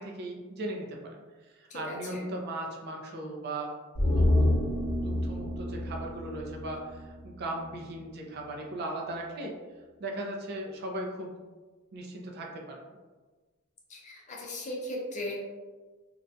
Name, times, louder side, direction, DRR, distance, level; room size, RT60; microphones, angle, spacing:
voice 1, 0.0-3.7 4.0-4.6 5.0-9.5 10.0-11.3 11.9-12.9, right 1 dB, 50° right, 0 dB, 0.4 m, -38 dB
voice 2, 1.7-2.2 13.9-15.4, left 1 dB, 35° left, -2 dB, 0.4 m, -37 dB
sound 1, 3.9-7.3 7.6-7.7, left 1 dB, 65° left, 0.7 m, -28 dB
2.4 x 2.1 x 2.5 m, 1.3 s
head